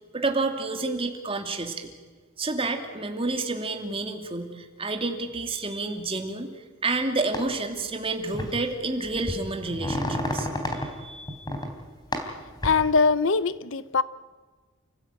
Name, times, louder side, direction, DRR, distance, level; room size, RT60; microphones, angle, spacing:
voice 1, 0.1-1.9 2.4-6.5 6.8-10.5 10.9-11.4, right 3 dB, 25° right, 4 dB, 2.8 m, -29 dB
sound 1, 7.3-7.4 8.3-8.6 9.0-10.9 11.3-11.7 12.1-12.8, left 1 dB, 20° left, 3.6 m, -30 dB
voice 2, 12.6-14.0, left 4 dB, 60° left, 16 dB, 0.7 m, -22 dB
29.5 x 16.0 x 9.1 m, 1.4 s
head